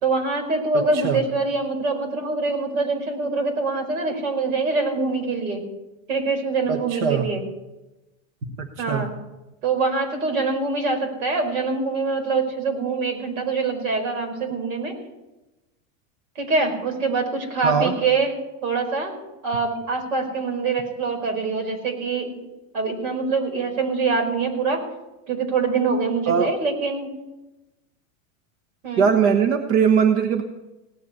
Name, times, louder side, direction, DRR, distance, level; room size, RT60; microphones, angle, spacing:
voice 1, 0.0-5.6 6.1-7.4 8.8-9.1 9.6-14.9 16.3-18.3 18.6-19.1 19.4-22.4 22.7-24.8 25.3-27.1 28.8-29.1, right 4 dB, 85° right, 4 dB, 5.1 m, -24 dB
voice 2, 0.7-1.2 6.7-7.3 8.6-9.1 17.6-17.9 26.3-26.5 29.0-30.4, right 6 dB, 60° right, 6 dB, 1.3 m, -21 dB
17.5 x 8.5 x 9.7 m, 1.0 s
supercardioid pair, 160°, 40 cm